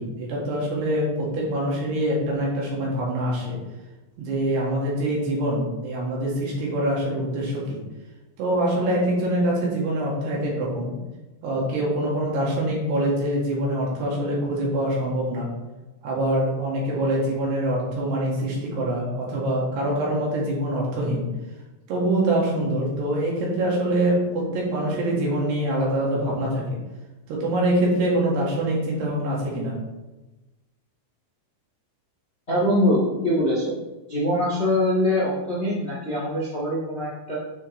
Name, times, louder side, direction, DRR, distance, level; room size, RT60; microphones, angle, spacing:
voice 1, 0.0-3.6 4.2-7.8 8.4-10.9 11.4-15.5 16.0-21.2 21.9-26.7 27.3-29.7, right 1 dB, 70° right, -4 dB, 4.0 m, -24 dB
voice 2, 32.5-33.7 34.1-37.4, left 1 dB, 60° left, -7 dB, 0.6 m, -23 dB
9.1 x 6.6 x 3.3 m, 1.1 s
omnidirectional pair, 5.0 m